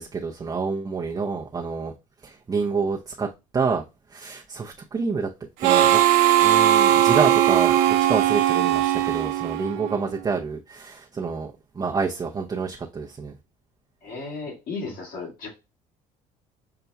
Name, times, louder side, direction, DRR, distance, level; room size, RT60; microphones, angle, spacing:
voice 1, 0.0-1.9 2.2-3.8 4.1-5.3 5.6-6.0 6.4-13.3, right 5 dB, 25° right, 0.7 m, -28 dB
Harmonica, 5.6-10.1, right 12 dB, 80° right, 0.6 m, -19 dB
voice 2, 14.0-15.5, left 4 dB, 65° left, 2.1 m, -35 dB
5.7 x 2.2 x 4.0 m
supercardioid pair, 90°, 16 cm